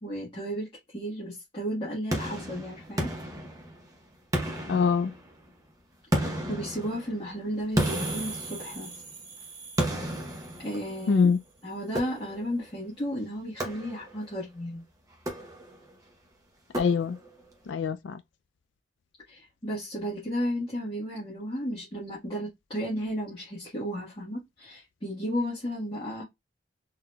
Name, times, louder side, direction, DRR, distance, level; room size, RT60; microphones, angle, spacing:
voice 1, 0.0-3.1 6.1-8.9 10.6-11.3 11.6-14.8 19.3-26.2, equal, 30° left, 1.4 m, -34 dB
sound 1, 2.1-3.9 4.3-5.5 6.1-9.1 9.8-11.2 11.9-12.6 13.6-14.3 15.1-15.9 16.7-17.4, right 1 dB, 20° right, 0.8 m, -33 dB
voice 2, 4.7-5.1 11.1-11.4 16.7-17.2 17.7-18.2, left 5 dB, 75° left, 0.3 m, -24 dB
sound 2, 7.8-11.4, right 4 dB, 70° right, 1.3 m, -42 dB
3.8 x 2.8 x 2.3 m
head